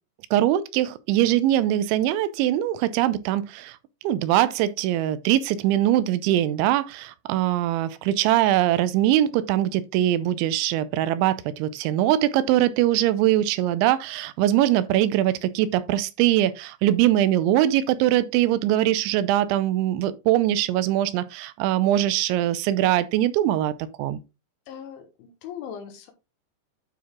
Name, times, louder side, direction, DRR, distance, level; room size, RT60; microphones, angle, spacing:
voice 1, 0.3-3.8 4.0-24.2, right 13 dB, 85° right, 3.0 m, -22 dB
voice 2, 24.7-26.1, left 8 dB, 85° left, 3.9 m, -39 dB
9.2 x 4.7 x 3.7 m
omnidirectional pair, 5.2 m